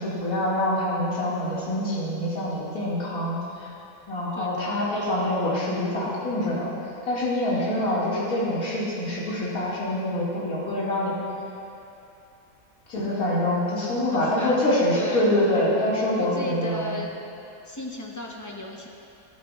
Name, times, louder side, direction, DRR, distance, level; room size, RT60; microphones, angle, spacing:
voice 1, 0.0-3.7 4.1-6.7 7.1-11.2 12.9-17.0, left 1 dB, 65° left, -8 dB, 2.5 m, -25 dB
voice 2, 4.3-4.7 7.5-7.8 14.1-15.3 16.2-17.1 17.6-18.9, left 1 dB, 20° left, -1 dB, 0.5 m, -35 dB
13.5 x 11.5 x 2.3 m, 2.8 s
omnidirectional pair, 1.6 m